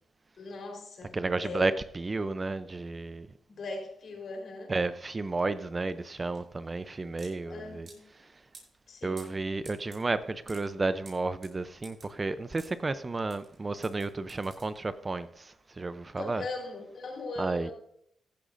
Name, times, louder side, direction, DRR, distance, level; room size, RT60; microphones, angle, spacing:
voice 1, 0.4-1.1 1.4-1.7 3.5-4.7 7.4-8.0 8.9-9.3 16.2-17.7, left 3 dB, 60° left, 4.2 m, -39 dB
voice 2, 1.1-3.3 4.7-7.9 8.2-8.4 9.0-16.4 17.4-17.7, right 3 dB, 30° right, 0.6 m, -32 dB
sound 1, 5.3-15.2, right 3 dB, 55° right, 5.4 m, -55 dB
15.0 x 11.0 x 2.6 m
cardioid pair, 65°, 0 cm